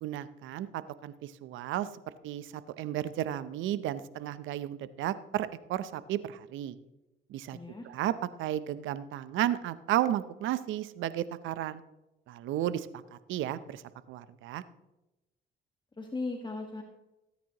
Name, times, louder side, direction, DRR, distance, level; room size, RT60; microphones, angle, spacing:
voice 1, 0.0-1.9 2.2-6.8 7.3-7.6 7.9-8.1 8.4-11.8 12.3-13.8 14.1-14.6, right 12 dB, 80° right, 15 dB, 0.7 m, -33 dB
voice 2, 7.5-7.9 16.0-16.8, left 3 dB, 25° left, 2 dB, 1.6 m, -37 dB
18.0 x 9.2 x 3.0 m, 0.96 s
supercardioid pair, 55°, 20 cm